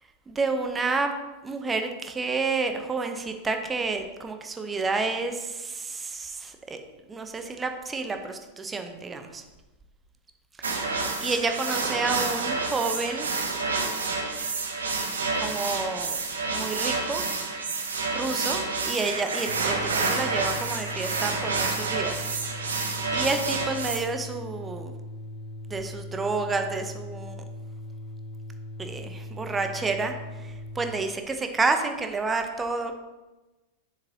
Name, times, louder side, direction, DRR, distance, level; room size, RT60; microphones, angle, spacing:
voice 1, 0.3-1.1 1.4-6.8 7.1-9.4 10.6-13.3 15.3-16.2 16.5-17.2 18.1-22.3 23.1-24.9 25.7-27.4 28.8-32.9, right 3 dB, 15° right, 6 dB, 0.8 m, -30 dB
sound 1, 10.6-24.0, right 3 dB, 70° right, 1.0 m, -29 dB
sound 2, 19.5-30.9, left 1 dB, 60° left, 1.0 m, -40 dB
7.7 x 7.2 x 2.9 m, 1.1 s
figure-of-eight pair, 90°, 0 cm